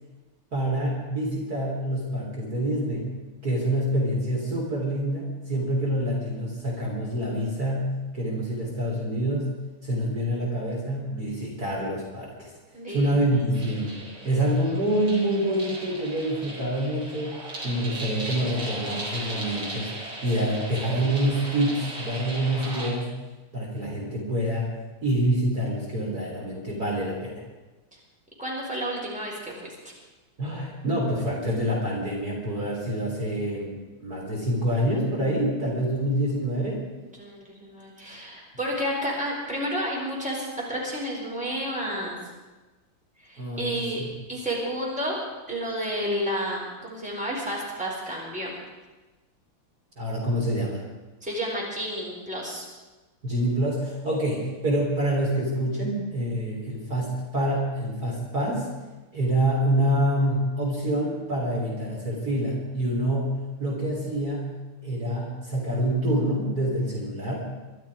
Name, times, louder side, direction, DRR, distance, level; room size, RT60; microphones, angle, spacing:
voice 1, 0.5-3.1 3.4-9.5 9.8-12.5 12.9-14.0 14.2-19.9 20.2-23.1 23.5-24.7 25.0-27.4 30.4-33.7 34.0-36.8 43.4-44.1 50.0-50.8 53.2-58.7 59.1-64.5 64.8-67.5, right 1 dB, 45° right, -3 dB, 3.9 m, -26 dB
voice 2, 12.7-13.4 28.4-29.7 37.1-42.2 43.2-44.0 44.3-45.2 45.5-48.5 51.2-52.6, equal, 5° right, -4 dB, 4.4 m, -31 dB
sound 1, 13.5-22.9, right 1 dB, 65° right, 4.6 m, -37 dB
23.0 x 12.5 x 4.8 m, 1.2 s
omnidirectional pair, 2.4 m